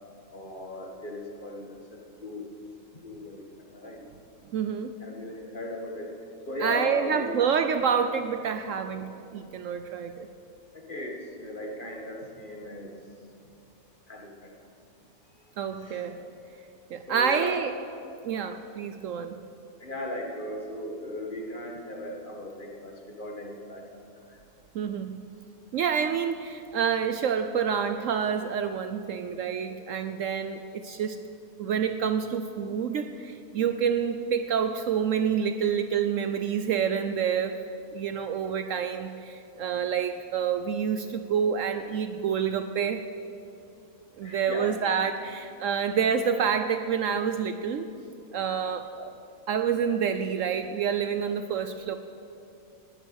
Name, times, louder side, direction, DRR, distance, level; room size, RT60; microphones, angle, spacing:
voice 1, 0.3-2.5 3.0-4.0 5.0-6.1 6.5-7.3 9.4-9.5 10.7-13.0 14.1-14.5 15.8-16.1 17.1-17.6 19.8-23.9 24.3-24.4 29.3-30.1 35.6-35.7 44.2-44.7, left 1 dB, 35° left, 0 dB, 1.8 m, -37 dB
voice 2, 4.5-4.9 6.6-10.3 15.6-16.2 16.9-17.7 18.2-19.4 24.7-25.2 25.7-31.2 31.6-37.6 37.9-43.0 44.2-47.9 48.3-49.1 49.5-52.0, right 7 dB, 65° right, 9 dB, 0.9 m, -28 dB
19.0 x 9.3 x 6.4 m, 2.6 s
omnidirectional pair, 1.6 m